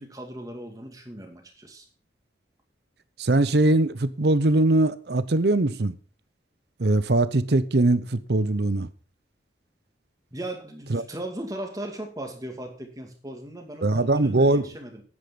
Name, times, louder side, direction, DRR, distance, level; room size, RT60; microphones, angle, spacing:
voice 1, 0.0-1.9 10.3-15.0, right 1 dB, 20° right, 2.2 m, -37 dB
voice 2, 3.2-6.0 6.8-8.9 10.9-11.0 13.8-14.6, right 2 dB, 65° right, 0.8 m, -21 dB
9.9 x 8.6 x 5.6 m
head